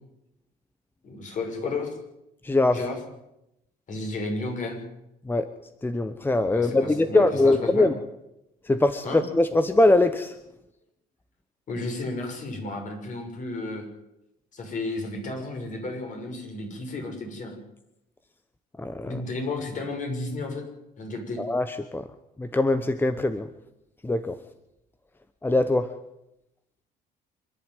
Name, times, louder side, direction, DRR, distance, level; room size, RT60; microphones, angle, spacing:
voice 1, 1.0-2.0 2.7-3.0 3.9-4.8 6.5-7.9 9.0-9.2 11.7-13.8 14.5-17.6 19.0-20.6 21.0-21.4, left 2 dB, 50° left, 3 dB, 6.5 m, -32 dB
voice 2, 2.4-2.8 5.3-5.5 5.8-7.9 8.7-10.3 18.8-19.2 21.4-22.0 22.4-23.5 24.0-24.3 25.4-25.9, left 2 dB, 10° left, 11 dB, 1.0 m, -22 dB
26.0 x 11.5 x 9.3 m, 0.87 s
cardioid pair, 110°, 17 cm